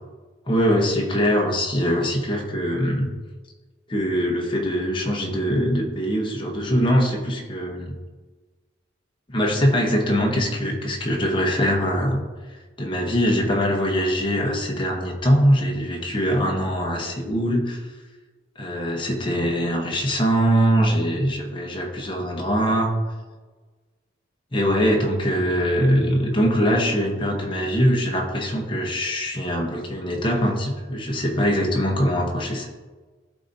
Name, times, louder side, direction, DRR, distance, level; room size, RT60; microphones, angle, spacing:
voice 1, 0.5-3.1 3.9-8.0 9.3-12.2 12.8-17.8 18.6-22.9 24.5-32.7, equal, 25° left, 0 dB, 1.0 m, -22 dB
12.0 x 4.1 x 2.7 m, 1.3 s
head